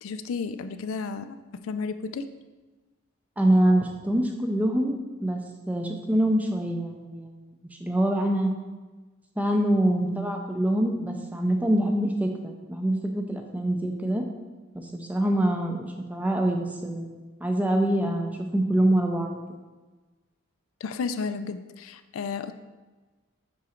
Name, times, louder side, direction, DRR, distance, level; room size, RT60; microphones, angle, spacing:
voice 1, 0.0-2.3 20.8-22.5, left 5 dB, 70° left, 10 dB, 0.4 m, -33 dB
voice 2, 3.4-5.4 5.7-7.4 7.8-8.5 9.4-14.2 14.7-19.4, right 1 dB, 5° right, 3 dB, 0.5 m, -25 dB
6.0 x 3.7 x 4.3 m, 1.2 s
head